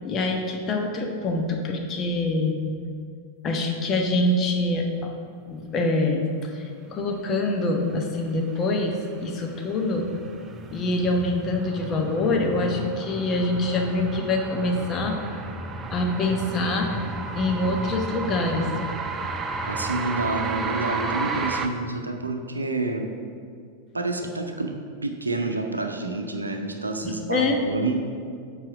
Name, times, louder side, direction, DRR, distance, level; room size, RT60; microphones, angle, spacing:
voice 1, 0.0-2.6 3.4-5.1 5.5-10.1 10.7-15.4 15.9-16.9 17.4-18.7 27.0-27.6, left 2 dB, 30° left, 2 dB, 0.9 m, -25 dB
sound 1, 8.9-21.7, right 4 dB, 20° right, 0.5 m, -33 dB
voice 2, 19.7-23.1 23.9-24.7 25.0-28.0, right 2 dB, 80° right, 5 dB, 0.6 m, -28 dB
7.5 x 4.9 x 4.8 m, 2.2 s
figure-of-eight pair, 90°, 0 cm